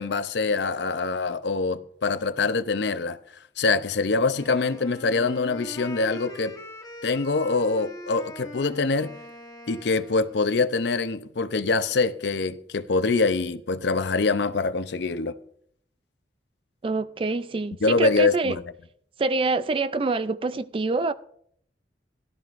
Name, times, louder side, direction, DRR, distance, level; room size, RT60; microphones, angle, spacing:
voice 1, 0.0-3.2 3.6-6.5 7.0-9.1 9.7-15.3 17.8-18.6, left 3 dB, 70° left, 0.6 m, -24 dB
Wind instrument woodwind instrument, 4.3-10.5, left 1 dB, 20° left, 1.1 m, -42 dB
voice 2, 16.8-18.6 19.2-21.1, right 3 dB, 30° right, 0.3 m, -26 dB
17.0 x 12.5 x 2.5 m
head